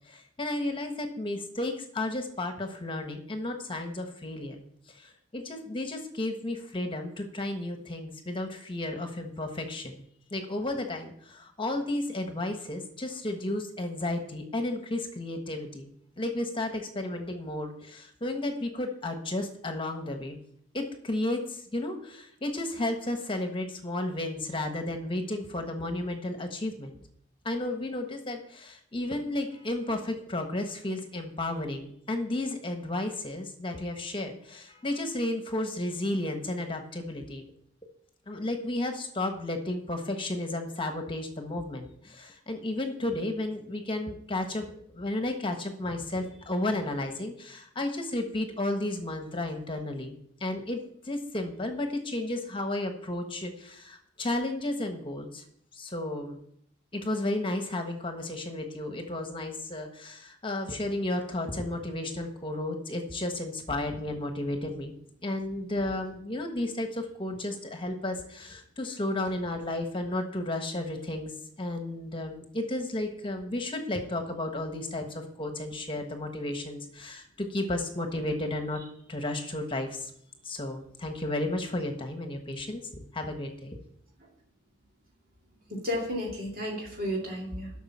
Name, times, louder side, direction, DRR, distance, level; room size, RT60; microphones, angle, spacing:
voice 1, 0.1-4.6 4.9-10.0 10.3-20.4 20.7-27.0 27.4-37.4 38.3-44.6 44.9-55.4 55.7-56.4 56.9-65.0 65.2-71.3 71.6-78.8 79.1-80.1 80.4-83.8, left 1 dB, 25° left, 5 dB, 1.3 m, -33 dB
voice 2, 85.7-87.7, equal, 50° right, -3 dB, 2.5 m, -32 dB
12.0 x 6.3 x 7.4 m, 0.68 s
head